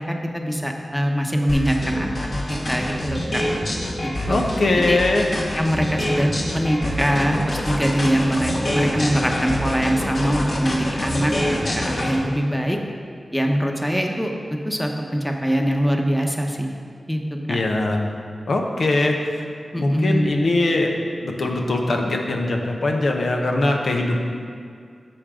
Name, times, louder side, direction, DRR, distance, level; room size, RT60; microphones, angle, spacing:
voice 1, 0.0-3.4 4.3-4.4 4.9-5.0 5.5-11.3 11.7-12.8 13.3-14.3 14.6-16.7 17.1-17.2 17.5-17.6 19.7-20.4, equal, 5° left, 2 dB, 1.0 m, -23 dB
sound 1, 1.5-12.1, left 1 dB, 55° left, 1.7 m, -25 dB
voice 2, 4.3-5.3 17.5-18.1 18.5-19.4 19.8-20.9 21.2-24.3, left 2 dB, 75° left, 1 dB, 0.9 m, -21 dB
9.9 x 7.1 x 3.8 m, 2.2 s
cardioid pair, 45°, 0 cm